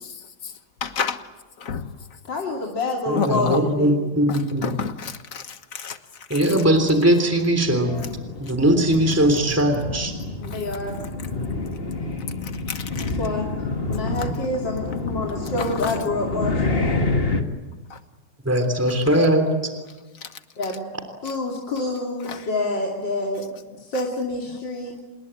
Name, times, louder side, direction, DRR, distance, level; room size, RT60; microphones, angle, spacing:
voice 1, 0.8-1.2 1.6-1.9 3.2-3.6 4.6-5.4 5.7-6.0 12.7-13.1, left 6 dB, 50° left, 1.7 m, -27 dB
voice 2, 2.3-4.1 7.7-8.1 10.4-11.0 13.0-13.5 13.9-16.8 20.6-20.9 21.2-23.4 23.8-25.0, left 2 dB, 90° left, 3.5 m, -28 dB
voice 3, 3.1-4.7 6.3-7.9 8.4-10.1 18.4-19.4, right 1 dB, 10° right, 3.2 m, -20 dB
sound 1, 7.5-17.4, left 3 dB, 30° left, 2.0 m, -28 dB
27.5 x 21.0 x 9.0 m
omnidirectional pair, 1.9 m